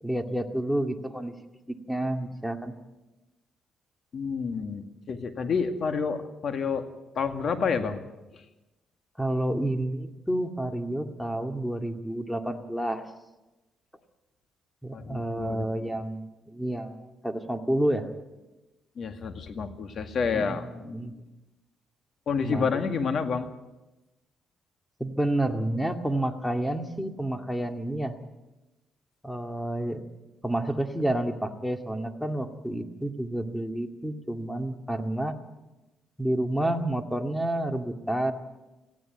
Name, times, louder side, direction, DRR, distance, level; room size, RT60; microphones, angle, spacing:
voice 1, 0.0-1.3 1.7-2.7 9.2-13.1 14.8-18.1 20.3-20.6 20.9-21.2 22.4-22.9 25.0-28.2 29.2-30.0 30.4-35.3 36.2-38.3, right 1 dB, 5° left, 6 dB, 2.1 m, -29 dB
voice 2, 4.1-6.9 7.1-8.0 8.3-8.4 14.9-15.7 19.0-21.2 22.3-23.5, left 5 dB, 55° left, 7 dB, 2.1 m, -29 dB
18.5 x 15.5 x 9.1 m, 1.0 s
cardioid pair, 90°, 0 cm